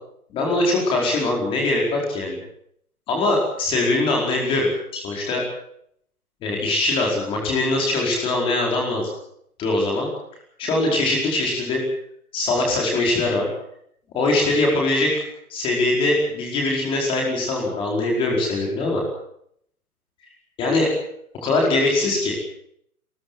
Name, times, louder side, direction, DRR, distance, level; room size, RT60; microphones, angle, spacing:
voice 1, 0.3-2.4 3.1-5.4 6.4-9.1 9.6-10.1 10.6-11.8 12.3-13.5 14.1-15.1 15.5-19.0 20.6-20.9 21.4-22.3, left 2 dB, 10° left, -1 dB, 4.7 m, -22 dB
28.0 x 14.5 x 7.7 m, 0.71 s
hypercardioid pair, 165°, 44 cm